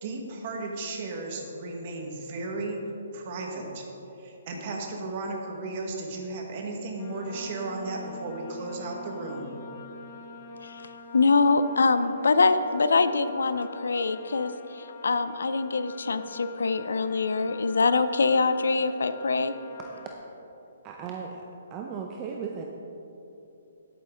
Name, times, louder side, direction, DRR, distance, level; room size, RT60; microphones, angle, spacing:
voice 1, 0.0-2.9 3.1-3.8 4.2-9.5, right 2 dB, 40° right, 1 dB, 1.4 m, -35 dB
sound 1, 7.0-20.1, left 3 dB, 35° left, 0.7 m, -44 dB
voice 2, 11.1-19.5, left 4 dB, 85° left, 11 dB, 0.5 m, -24 dB
voice 3, 20.8-21.4 21.7-22.6, right 6 dB, 25° right, 1 dB, 0.6 m, -36 dB
10.5 x 8.7 x 3.7 m, 3.0 s
hypercardioid pair, 155°, 0 cm